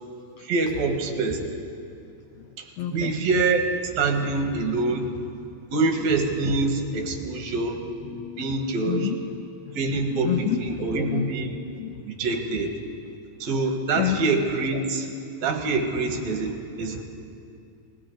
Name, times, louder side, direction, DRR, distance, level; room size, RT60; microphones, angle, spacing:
voice 1, 0.4-1.4 2.6-2.7 2.9-5.1 5.7-7.9 8.4-9.1 9.7-11.6 12.0-12.7 13.4-15.1 15.4-17.0, right 3 dB, 65° right, 4 dB, 2.5 m, -25 dB
voice 2, 2.8-3.1 8.0-8.5 8.9-9.8 10.0-11.5 11.8-12.0 14.0-14.2, left 10 dB, 85° left, 7 dB, 1.5 m, -29 dB
19.5 x 15.5 x 3.9 m, 2.5 s
omnidirectional pair, 3.7 m